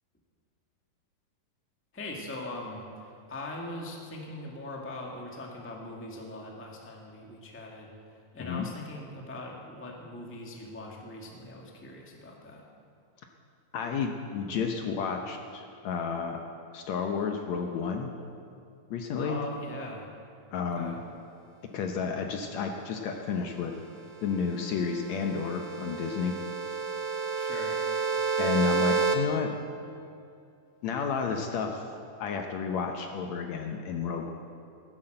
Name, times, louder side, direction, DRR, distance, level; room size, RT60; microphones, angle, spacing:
voice 1, 1.9-7.9 8.3-12.6 19.2-20.1 20.8-21.0 27.3-27.8, left 2 dB, 5° left, 0 dB, 1.0 m, -41 dB
voice 2, 13.7-16.4 16.7-18.1 18.9-19.4 20.5-20.9 21.7-23.7 24.2-26.3 28.4-29.5 30.8-31.9 32.2-34.3, left 6 dB, 70° left, 3 dB, 1.9 m, -31 dB
sound 1, 24.2-29.1, right 5 dB, 55° right, 1.3 m, -30 dB
15.0 x 11.5 x 7.9 m, 2.5 s
omnidirectional pair, 3.8 m